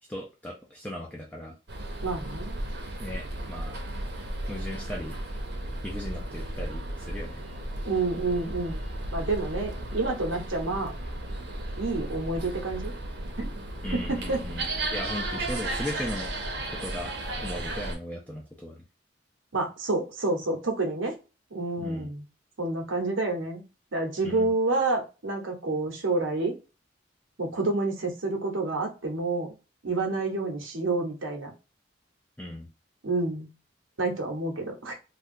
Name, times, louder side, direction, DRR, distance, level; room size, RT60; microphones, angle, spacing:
voice 1, 0.1-1.5 3.0-3.7 4.5-5.2 5.8-7.4 13.8-16.3 16.8-17.1 17.4-18.8 21.8-22.1 24.2-24.5 32.4-32.7, left 1 dB, 5° left, -2 dB, 0.5 m, -37 dB
sound 1, 1.7-18.0, right 1 dB, 55° right, 0.8 m, -34 dB
voice 2, 2.0-2.6 7.8-8.8 9.1-10.9 11.8-12.9 13.4-13.6 13.9-14.4 19.5-21.1 21.5-22.2 22.6-23.6 23.9-26.6 27.4-29.5 29.8-31.5 33.0-33.5 34.0-34.9, right 2 dB, 85° right, 2 dB, 1.0 m, -29 dB
3.4 x 2.3 x 2.5 m, 0.29 s
head